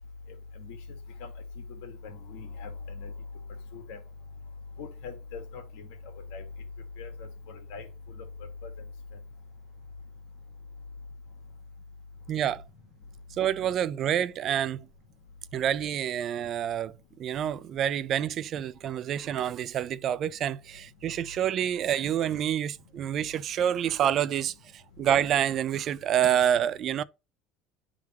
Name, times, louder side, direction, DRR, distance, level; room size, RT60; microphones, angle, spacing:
voice 1, 1.8-2.7 2.9-3.1 3.7-4.0 4.8-5.6 6.3-6.4 7.0-7.9 8.6-8.7, left 4 dB, 75° left, 1.7 m, -41 dB
voice 2, 12.3-12.6 13.3-14.9 15.5-27.0, right 10 dB, 35° right, 0.3 m, -28 dB
10.5 x 3.6 x 2.9 m
cardioid pair, 170°, 0 cm